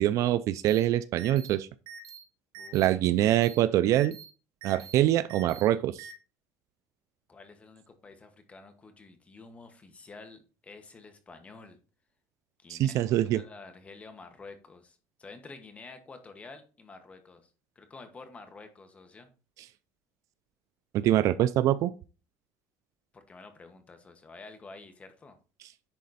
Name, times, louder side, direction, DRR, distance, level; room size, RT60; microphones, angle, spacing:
voice 1, 0.0-1.7 2.7-4.2 4.6-6.1 12.7-13.4 20.9-21.9, right 13 dB, 50° right, 0.4 m, -24 dB
sound 1, 0.7-0.8 1.2-1.5 1.9-2.2 2.5-2.9 3.2-3.6 3.9-4.2 4.6-4.9 5.3-5.6 6.0-6.1, right 7 dB, 85° right, 1.9 m, -45 dB
voice 2, 2.5-3.1 7.3-11.8 12.6-17.5 17.7-19.3 23.1-25.4, left 3 dB, 20° left, 1.3 m, -49 dB
10.5 x 4.2 x 4.1 m
cardioid pair, 145°, 7 cm